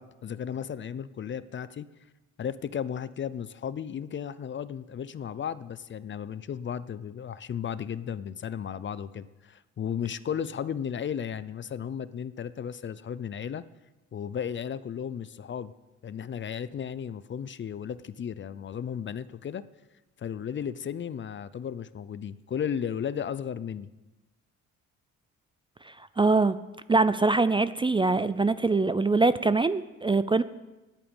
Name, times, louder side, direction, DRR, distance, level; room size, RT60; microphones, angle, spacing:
voice 1, 0.0-1.9 2.4-13.6 14.1-15.7 16.0-19.6 20.2-23.9, left 8 dB, 40° left, 16 dB, 0.5 m, -34 dB
voice 2, 25.9-26.6 26.9-30.4, right 3 dB, 15° right, 14 dB, 0.4 m, -23 dB
9.9 x 8.8 x 8.9 m, 1.1 s
cardioid pair, 90°, 30 cm